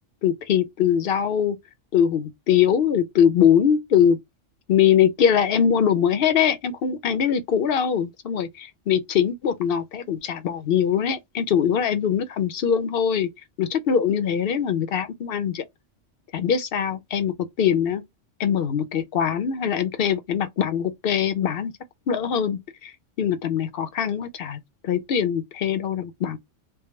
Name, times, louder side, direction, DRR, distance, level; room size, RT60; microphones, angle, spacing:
voice 1, 0.2-1.6 1.9-4.2 4.7-13.3 13.6-15.6 16.3-18.0 18.4-21.7 22.1-26.4, left 8 dB, 55° left, 0.8 m, -22 dB
3.4 x 2.2 x 4.3 m
omnidirectional pair, 1.3 m